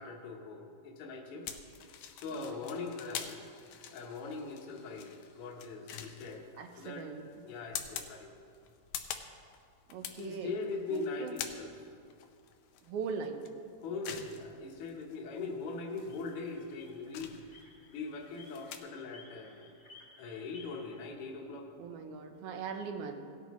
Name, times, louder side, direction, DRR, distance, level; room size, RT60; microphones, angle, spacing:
voice 1, 0.0-1.5 2.1-3.4 3.9-7.1 7.4-8.3 10.2-11.7 13.8-17.4 17.9-19.7 20.2-21.9, left 3 dB, 60° left, 0 dB, 1.7 m, -41 dB
sound 1, 1.5-18.8, left 9 dB, 80° left, 2.0 m, -46 dB
voice 2, 6.6-7.3 9.9-10.5 10.9-11.4 12.8-13.4 21.8-23.1, right 5 dB, 80° right, 6 dB, 2.2 m, -40 dB
sound 2, 15.6-21.1, left 3 dB, 35° left, 1.2 m, -58 dB
17.0 x 9.3 x 3.1 m, 2.3 s
omnidirectional pair, 3.3 m